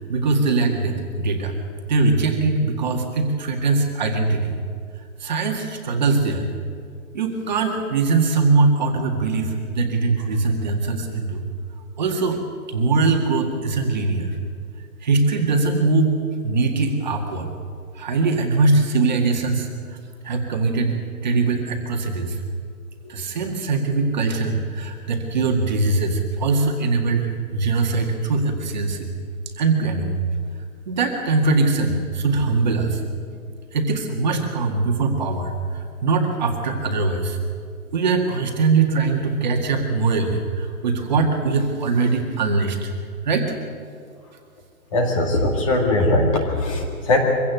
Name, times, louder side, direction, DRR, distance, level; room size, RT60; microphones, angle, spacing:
voice 1, 0.0-1.5 1.9-4.6 5.2-6.5 7.1-11.4 12.0-12.4 12.7-14.3 15.0-17.5 17.9-20.0 20.2-21.0 21.2-22.4 23.1-29.1 29.6-30.2 30.9-33.0 33.7-37.4 37.9-42.9 43.2-43.5, right 3 dB, 30° right, 2 dB, 2.0 m, -21 dB
voice 2, 44.9-47.2, left 2 dB, 20° left, 2 dB, 2.0 m, -20 dB
24.0 x 16.5 x 8.2 m, 2.2 s
hypercardioid pair, 180°, 44 cm